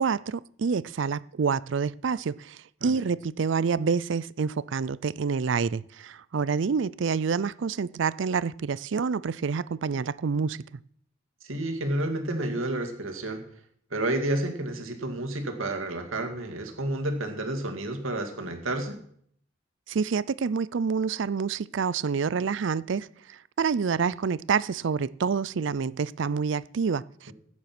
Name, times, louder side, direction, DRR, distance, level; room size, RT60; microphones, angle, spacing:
voice 1, 0.0-10.6 19.9-27.3, right 5 dB, 65° right, 0.4 m, -27 dB
voice 2, 11.4-13.4 13.9-19.0 27.3-27.4, right 1 dB, 85° right, 2.2 m, -30 dB
15.0 x 9.5 x 6.0 m
head